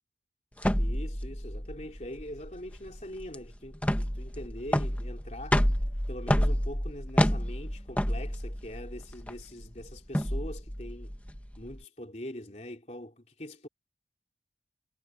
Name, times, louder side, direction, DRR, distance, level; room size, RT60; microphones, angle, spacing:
voice 1, 0.5-5.6 6.1-11.1 11.6-13.7, left 1 dB, 40° left, 3.3 m, -43 dB
sound 1, 0.6-11.8, equal, 10° left, 1.4 m, -29 dB
head